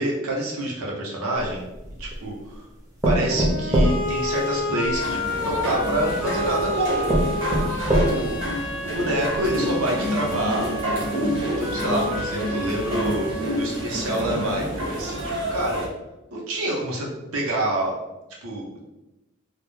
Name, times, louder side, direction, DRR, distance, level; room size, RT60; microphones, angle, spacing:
voice 1, 0.0-1.7 2.0-2.6 3.0-7.1 8.1-8.4 8.8-10.7 11.6-13.3 13.6-15.2 15.5-15.8 16.3-17.9 18.4-18.8, right 1 dB, 80° right, -2 dB, 0.7 m, -27 dB
sound 1, 1.4-2.2 3.0-5.0 6.0-6.1 6.6-6.7 7.1-8.4 8.9-9.0 9.4-9.5, right 1 dB, 15° right, 0.4 m, -23 dB
sound 2, 3.2-14.2, left 1 dB, 75° left, 0.6 m, -31 dB
sound 3, 4.9-15.9, equal, 55° right, 1.0 m, -29 dB
2.2 x 2.1 x 3.0 m, 0.99 s
head